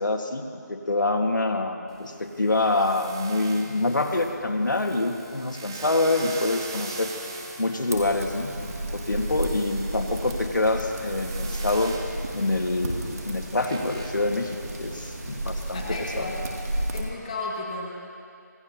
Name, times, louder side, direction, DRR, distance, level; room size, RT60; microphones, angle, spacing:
voice 1, 0.0-7.1 7.6-12.0 12.3-16.3, left 2 dB, 85° left, 3 dB, 1.7 m, -26 dB
sound 1, 1.9-16.5, right 3 dB, 10° right, 0.6 m, -42 dB
sound 2, 7.9-17.0, right 1 dB, 55° right, 2.5 m, -33 dB
voice 2, 15.7-16.4 16.9-17.9, left 2 dB, 20° left, -3 dB, 1.6 m, -33 dB
26.0 x 15.0 x 2.9 m, 2.4 s
figure-of-eight pair, 170°, 10 cm